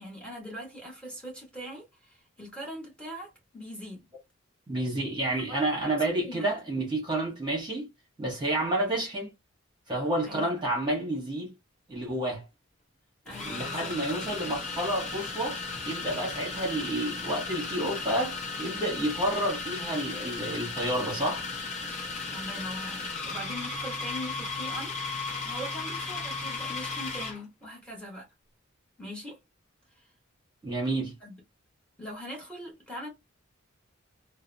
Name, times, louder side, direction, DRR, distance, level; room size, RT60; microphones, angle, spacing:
voice 1, 0.0-4.1 5.5-6.0 6.2-6.5 10.2-10.6 13.2-14.0 22.3-28.3 29.0-29.4 30.0-30.1 31.2-31.3 32.0-33.1, equal, 5° left, 1.1 m, -41 dB
voice 2, 4.7-7.9 8.2-9.3 9.9-11.5 11.9-12.4 13.4-15.6 15.8-21.4 30.6-31.2, right 1 dB, 25° right, 1.0 m, -30 dB
sound 1, 12.1-12.2 13.3-27.4, left 4 dB, 35° left, 0.8 m, -35 dB
2.7 x 2.0 x 2.5 m
head